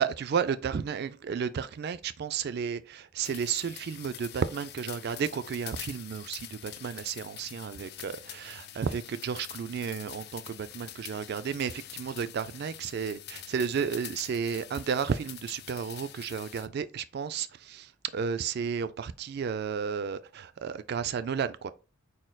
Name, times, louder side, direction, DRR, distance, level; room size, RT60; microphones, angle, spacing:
voice 1, 0.0-21.7, right 6 dB, 50° right, 0.3 m, -32 dB
sound 1, 3.2-16.7, left 13 dB, 50° left, 0.4 m, -45 dB
4.1 x 3.7 x 2.2 m
head